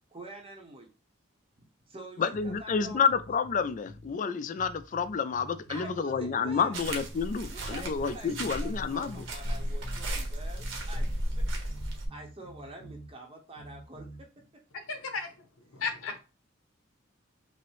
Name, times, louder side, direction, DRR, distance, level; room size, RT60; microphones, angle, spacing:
voice 1, 0.1-0.9 1.6-3.1 5.7-6.8 7.5-11.4 12.1-14.1, right 1 dB, 30° right, 0.7 m, -46 dB
voice 2, 2.2-9.2, left 6 dB, 40° left, 0.3 m, -29 dB
sound 1, 2.3-4.1 4.6-7.2 7.6-10.1 10.6-13.1 13.6-14.2, equal, 70° left, 1.7 m, -48 dB
sound 2, 6.7-12.1, right 1 dB, 65° right, 1.0 m, -34 dB
voice 3, 14.7-15.5 15.7-16.2, left 4 dB, 85° left, 0.8 m, -35 dB
5.4 x 2.0 x 3.1 m
head